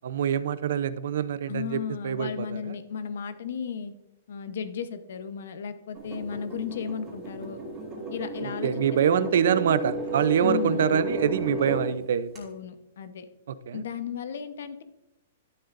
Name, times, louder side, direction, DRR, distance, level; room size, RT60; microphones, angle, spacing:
voice 1, 0.0-2.7 8.4-12.3 13.5-13.8, right 8 dB, 60° right, 14 dB, 0.5 m, -25 dB
voice 2, 1.5-3.9 4.3-7.6 8.1-8.8 9.1-9.4 10.4-11.1 12.3-13.2 13.7-14.8, left 7 dB, 60° left, 11 dB, 0.9 m, -35 dB
sound 1, 5.9-11.9 12.3-12.4, right 2 dB, 15° right, 2.7 m, -38 dB
sound 2, 7.1-11.9, right 1 dB, 10° left, 2.8 m, -34 dB
12.0 x 7.7 x 2.5 m, 0.89 s
hypercardioid pair, 180°, 0 cm